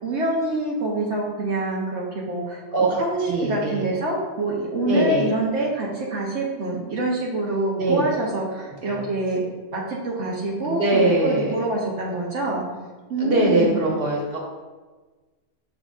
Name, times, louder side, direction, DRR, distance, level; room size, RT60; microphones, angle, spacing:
voice 1, 0.0-2.6 3.0-9.4 9.7-12.7 13.1-14.0, right 2 dB, 80° right, -4 dB, 1.2 m, -26 dB
voice 2, 2.7-3.9 4.8-5.3 7.7-8.0 8.8-9.0 10.6-11.6 13.2-14.4, right 2 dB, 55° right, -2 dB, 1.5 m, -22 dB
6.4 x 6.2 x 2.5 m, 1.3 s
omnidirectional pair, 1.1 m